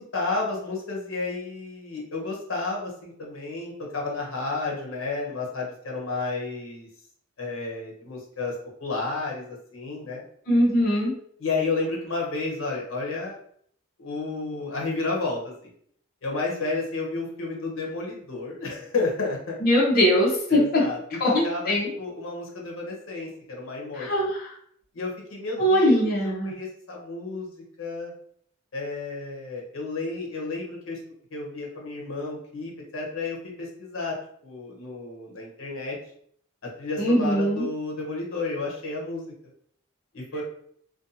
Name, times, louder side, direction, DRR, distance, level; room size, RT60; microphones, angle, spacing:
voice 1, 0.0-6.9 7.4-8.5 8.8-10.2 11.4-13.4 14.0-15.5 16.2-19.6 20.5-24.3 24.9-28.1 28.7-31.0 31.3-34.2 34.4-36.0 36.8-39.3 40.1-40.4, left 3 dB, 80° left, -2 dB, 0.7 m, -31 dB
voice 2, 10.5-11.1 19.6-20.8 21.2-21.3 21.7-21.9 24.0-24.2 25.6-26.5 37.0-37.6, equal, 45° left, -5 dB, 0.7 m, -21 dB
2.5 x 2.2 x 2.7 m, 0.64 s
head